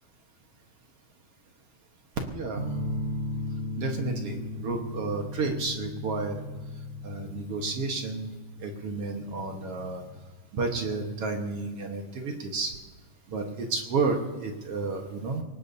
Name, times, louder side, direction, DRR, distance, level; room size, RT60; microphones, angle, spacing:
voice 1, 2.3-2.7 3.8-6.4 7.0-8.3 8.6-10.0 10.5-12.7 13.3-15.4, right 3 dB, 55° right, 3 dB, 1.9 m, -31 dB
sound 1, 2.5-10.2, left 1 dB, 25° right, 5.6 m, -37 dB
24.0 x 19.0 x 2.8 m, 1.3 s
omnidirectional pair, 3.8 m